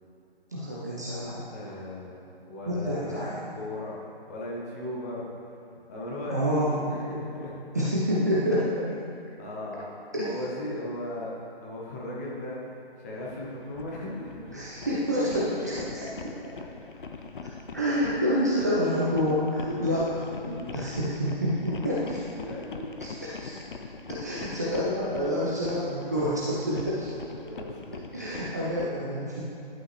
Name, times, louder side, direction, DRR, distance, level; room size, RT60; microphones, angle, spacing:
voice 1, 0.5-1.5 2.7-3.4 6.3-6.7 7.7-8.7 10.1-10.4 14.5-15.3 15.7-16.1 17.7-20.0 20.7-22.0 23.4-23.5 24.1-27.1 28.1-29.4, equal, 20° right, -8 dB, 0.5 m, -27 dB
voice 2, 1.5-4.0 4.3-5.3 5.9-7.6 8.7-8.8 9.4-9.9 10.2-11.3 11.6-14.6 15.1-15.4 19.6-20.0 20.5-20.6 21.0-21.1 21.7-21.8 22.2-22.9 27.4-28.2, left 1 dB, 15° left, -4 dB, 0.8 m, -37 dB
sound 1, 13.3-28.9, left 4 dB, 55° left, 0.6 m, -42 dB
11.0 x 5.5 x 3.2 m, 2.8 s
figure-of-eight pair, 140°, 30 cm